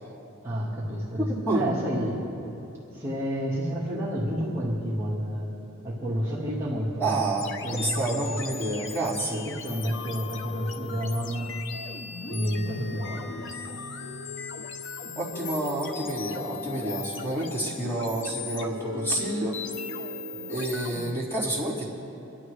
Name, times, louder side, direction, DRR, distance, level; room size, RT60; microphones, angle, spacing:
voice 1, 0.4-2.2 2.9-5.5 5.8-7.2 7.6-8.4 9.1-11.6 12.3-13.4, equal, 15° right, -9 dB, 1.7 m, -30 dB
voice 2, 7.0-9.5 15.2-19.8 20.5-21.8, right 2 dB, 10° left, -7 dB, 3.5 m, -29 dB
sound 1, 7.4-21.1, left 4 dB, 60° left, 0.8 m, -37 dB
25.0 x 12.0 x 3.3 m, 3.0 s
head